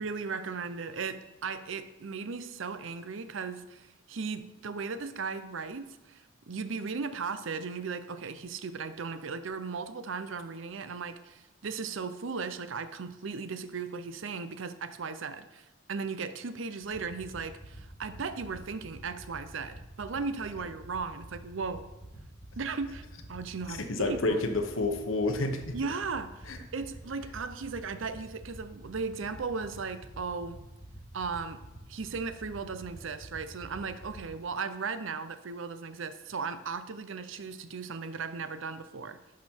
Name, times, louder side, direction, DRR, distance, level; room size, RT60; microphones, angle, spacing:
voice 1, 0.0-21.9 22.6-23.0 23.3-24.4 25.7-30.7 31.1-31.6 31.9-39.2, right 5 dB, 70° right, 0.6 m, -37 dB
sound 1, 16.8-34.2, right 1 dB, 10° left, 2.9 m, -46 dB
voice 2, 23.7-25.8 26.5-26.6, left 2 dB, 75° left, 0.9 m, -29 dB
11.5 x 4.9 x 4.5 m
head